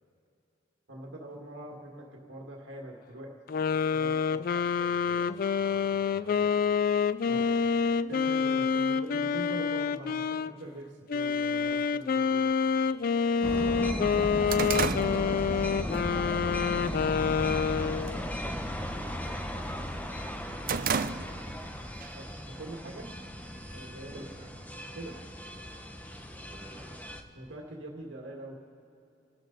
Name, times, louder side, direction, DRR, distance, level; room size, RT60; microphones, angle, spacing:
voice 1, 0.9-3.3 3.9-4.4 7.3-7.4 8.1-12.5 22.2-23.1 23.7-24.2 25.0-25.2 27.3-28.6, right 1 dB, 75° right, -1 dB, 1.9 m, -43 dB
sound 1, 3.5-10.5 11.1-18.3, left 6 dB, 50° left, 0.3 m, -27 dB
voice 2, 4.5-6.8 7.1-7.7 18.4-21.7 24.0-24.5 26.3-26.9, equal, 20° right, -6 dB, 5.1 m, -53 dB
sound 2, 11.6-11.7 12.6-12.7 13.2-13.3 13.6-16.0 16.4-16.7 17.2-17.7 17.9-18.3 18.6-19.8 20.2-21.7 22.0-22.1 23.0-23.9, right 6 dB, 50° right, 0.5 m, -33 dB
sound 3, 13.4-27.2, equal, 10° left, 0.9 m, -36 dB
28.5 x 12.5 x 4.0 m, 2.7 s
head